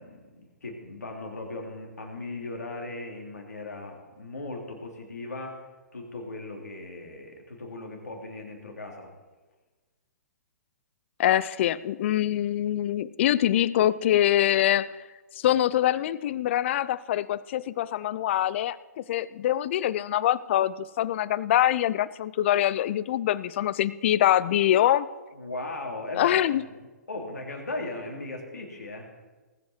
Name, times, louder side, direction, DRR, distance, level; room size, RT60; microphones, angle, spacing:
voice 1, 0.0-5.7 5.9-9.1 25.3-26.8 27.1-29.1, left 2 dB, 75° left, 1 dB, 3.3 m, -38 dB
voice 2, 11.2-15.0 15.4-25.1 26.1-26.6, left 12 dB, 45° left, 19 dB, 0.5 m, -24 dB
19.0 x 8.2 x 4.7 m, 1.3 s
figure-of-eight pair, 120°, 9 cm